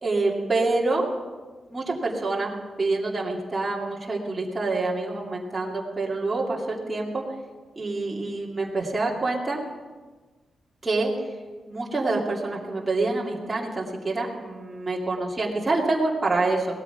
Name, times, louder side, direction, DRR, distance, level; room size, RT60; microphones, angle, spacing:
voice 1, 0.0-1.1 1.7-2.5 2.8-7.2 7.8-9.6 10.8-11.1 11.7-16.7, right 3 dB, 20° right, -3 dB, 2.4 m, -26 dB
18.0 x 13.0 x 5.8 m, 1.3 s
wide cardioid pair, 170°, 0 cm